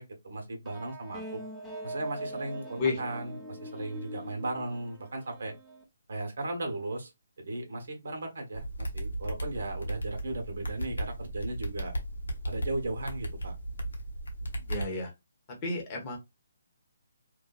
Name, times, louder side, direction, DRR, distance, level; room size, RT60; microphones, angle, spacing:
voice 1, 0.0-1.4 1.8-5.5 6.1-7.1 7.4-11.9 12.5-13.6, right 2 dB, 65° right, 1.0 m, -36 dB
sound 1, 0.7-5.8, right 1 dB, 5° right, 0.6 m, -43 dB
sound 2, 8.5-14.9, right 1 dB, 85° left, 0.9 m, -36 dB
voice 2, 14.7-15.1 15.6-16.2, left 3 dB, 30° left, 0.9 m, -31 dB
2.6 x 2.2 x 2.3 m
figure-of-eight pair, 145°, 0 cm